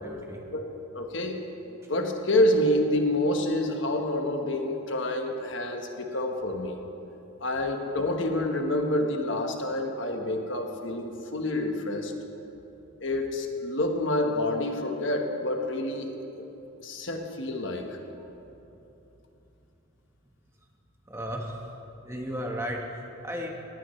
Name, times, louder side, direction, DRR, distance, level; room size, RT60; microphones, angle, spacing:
voice 1, 0.0-0.4 1.8-1.9 18.2-18.3 21.1-23.5, equal, 15° right, 0 dB, 1.3 m, -35 dB
voice 2, 0.5-1.4 1.9-6.8 7.4-12.1 13.0-16.5 16.8-18.0, left 1 dB, 65° left, 3 dB, 1.3 m, -28 dB
19.5 x 16.5 x 3.3 m, 3.0 s
head